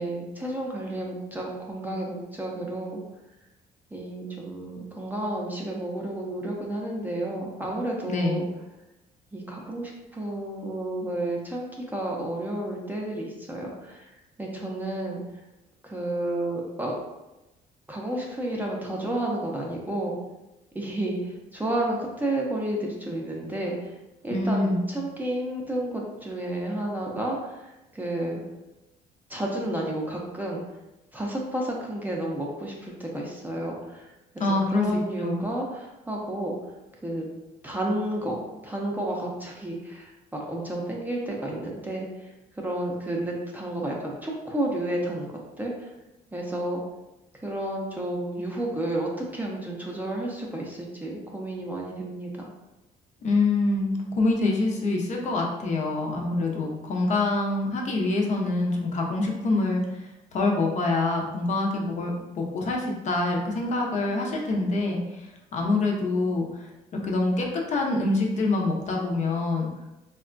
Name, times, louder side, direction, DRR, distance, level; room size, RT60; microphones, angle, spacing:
voice 1, 0.0-3.0 3.9-8.5 9.3-14.1 14.4-15.2 15.8-17.0 17.9-20.1 20.7-23.9 24.2-28.4 29.3-30.6 31.1-34.4 34.7-36.5 37.0-37.3 37.6-42.1 42.6-45.9 46.3-46.8 47.4-52.5, right 1 dB, 10° right, -2 dB, 0.5 m, -31 dB
voice 2, 8.1-8.5 24.3-24.8 34.4-35.4 53.2-59.8 60.3-62.1 62.4-65.3 65.5-66.7 67.0-69.7, left 2 dB, 45° left, 0 dB, 0.6 m, -25 dB
3.4 x 2.1 x 2.5 m, 0.99 s
cardioid pair, 110°, 17 cm